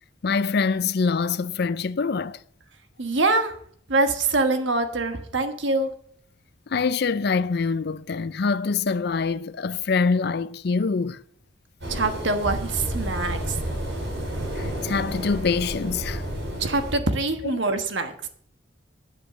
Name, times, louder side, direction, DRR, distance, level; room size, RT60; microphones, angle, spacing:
voice 1, 0.2-2.4 6.7-11.2 14.6-16.2, left 4 dB, 55° left, 0.5 m, -25 dB
voice 2, 3.0-3.5 3.9-5.9 11.9-13.6 16.6-18.3, right 2 dB, 70° right, 1.3 m, -24 dB
sound 1, 11.8-16.9, right 1 dB, 90° right, 5.1 m, -31 dB
10.5 x 8.4 x 6.8 m
head